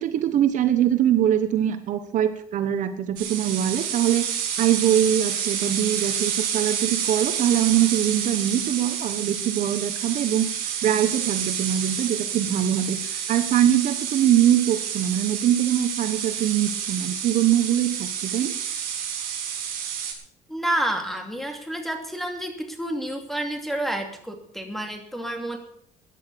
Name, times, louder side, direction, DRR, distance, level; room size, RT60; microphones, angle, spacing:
voice 1, 0.0-4.3 4.6-18.5, right 11 dB, 55° right, 10 dB, 1.1 m, -23 dB
sound 1, 3.2-20.1, right 8 dB, 85° right, 5.7 m, -29 dB
voice 2, 20.5-25.6, right 1 dB, ahead, 4 dB, 2.7 m, -29 dB
15.0 x 10.5 x 6.9 m, 0.66 s
cardioid pair, 135°, 16 cm